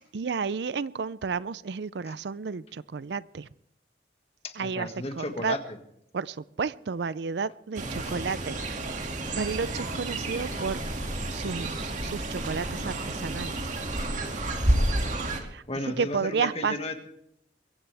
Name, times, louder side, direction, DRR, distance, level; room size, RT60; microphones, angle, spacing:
voice 1, 0.1-3.5 4.6-4.9 5.2-5.6 6.1-8.8 9.3-10.8 11.3-13.7 15.5-16.8, right 5 dB, 70° right, 18 dB, 0.5 m, -32 dB
voice 2, 4.4-5.6 8.0-8.2 14.7-15.1 15.7-17.0, left 2 dB, 35° left, 6 dB, 1.8 m, -34 dB
Fowl, 7.7-15.4, right 1 dB, 45° right, 2.2 m, -30 dB
23.0 x 15.5 x 3.5 m, 0.75 s
head